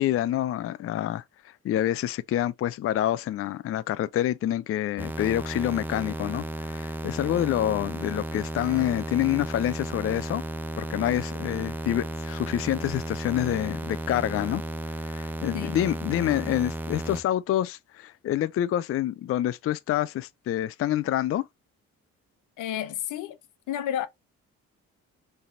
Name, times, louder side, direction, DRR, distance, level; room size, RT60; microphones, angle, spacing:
voice 1, 0.0-10.4 10.8-14.6 14.9-21.5, left 12 dB, 50° left, 0.4 m, -27 dB
sound 1, 5.0-17.2, right 1 dB, 5° right, 0.6 m, -34 dB
voice 2, 22.6-23.4 23.7-24.1, left 10 dB, 85° left, 0.9 m, -31 dB
5.5 x 3.3 x 2.5 m
cardioid pair, 90°, 30 cm